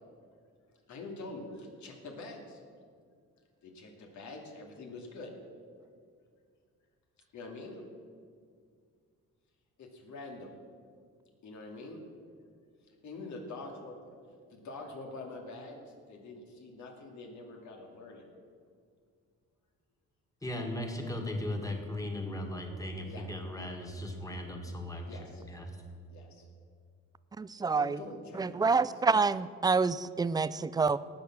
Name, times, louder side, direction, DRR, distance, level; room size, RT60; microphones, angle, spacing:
voice 1, 0.9-2.6 3.6-5.3 7.3-7.8 9.8-10.5 11.4-12.0 13.0-13.9 14.5-18.3 23.0-23.3 25.1-25.4 26.1-26.4 27.7-28.9, left 2 dB, 70° left, 2 dB, 2.4 m, -45 dB
voice 2, 20.4-25.8, left 1 dB, 10° left, 2 dB, 2.0 m, -37 dB
voice 3, 27.4-28.0 28.3-31.0, right 4 dB, 15° right, 17 dB, 0.3 m, -27 dB
18.0 x 6.7 x 6.0 m, 2.1 s
cardioid pair, 90°, 30 cm